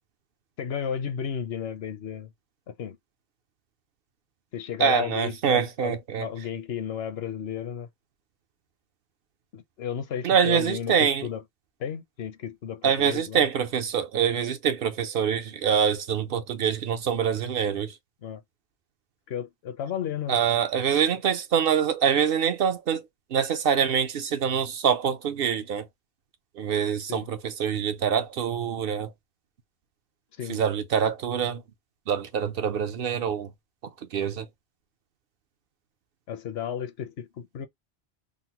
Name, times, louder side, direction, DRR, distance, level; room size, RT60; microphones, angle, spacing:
voice 1, 0.6-2.3 2.7-3.0 4.5-7.9 9.5-11.4 11.8-13.5 18.2-18.4 19.3-20.4 27.1-27.3 30.4-30.6 36.3-37.7, left 8 dB, 70° left, 0.9 m, -33 dB
voice 2, 4.8-6.3 10.2-11.3 12.8-17.9 20.3-23.0 23.3-25.9 26.6-29.1 30.5-31.6 32.1-33.5 34.1-34.5, right 7 dB, 60° right, 0.7 m, -25 dB
3.7 x 2.0 x 2.8 m
omnidirectional pair, 1.1 m